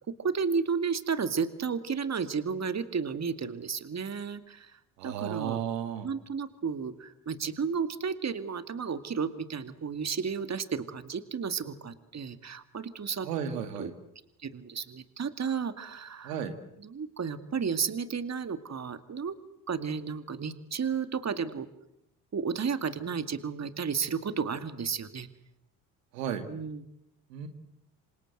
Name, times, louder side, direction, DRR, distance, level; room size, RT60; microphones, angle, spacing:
voice 1, 0.0-4.8 5.0-5.6 6.0-13.3 13.8-13.9 14.4-16.4 16.8-19.4 19.7-21.7 22.3-25.3 26.5-26.8, right 6 dB, 35° right, 12 dB, 2.3 m, -33 dB
voice 2, 5.0-6.1 13.2-13.9 16.2-16.5 26.1-26.5 27.3-27.5, right 8 dB, 80° right, 9 dB, 2.2 m, -33 dB
27.0 x 26.5 x 8.0 m, 0.81 s
hypercardioid pair, 50°, 48 cm